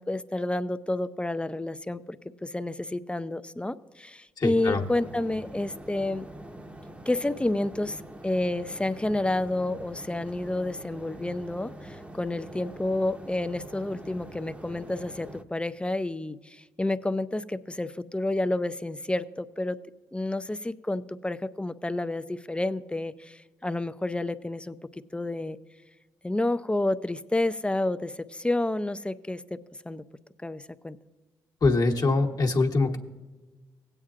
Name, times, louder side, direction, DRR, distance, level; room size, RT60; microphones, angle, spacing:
voice 1, 0.0-2.2 2.4-6.3 7.1-19.8 20.1-25.6 26.2-29.6 29.9-30.0 30.4-31.0, left 2 dB, 10° left, 13 dB, 0.5 m, -30 dB
voice 2, 4.4-4.9 31.6-33.0, left 3 dB, 45° left, 1 dB, 1.2 m, -23 dB
sound 1, 4.5-15.4, right 1 dB, 15° right, 0.8 m, -44 dB
17.0 x 8.9 x 2.5 m, 1.2 s
supercardioid pair, 50°, 9 cm